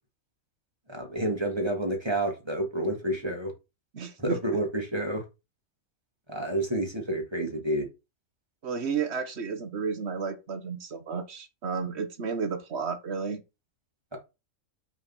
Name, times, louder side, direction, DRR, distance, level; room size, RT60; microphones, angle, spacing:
voice 1, 0.9-3.5 4.2-5.2 6.3-7.9 14.1-14.2, right 1 dB, 20° right, 1.9 m, -29 dB
voice 2, 3.9-4.4 8.6-13.4, right 5 dB, 50° right, 1.4 m, -32 dB
5.6 x 5.1 x 4.2 m
omnidirectional pair, 1.5 m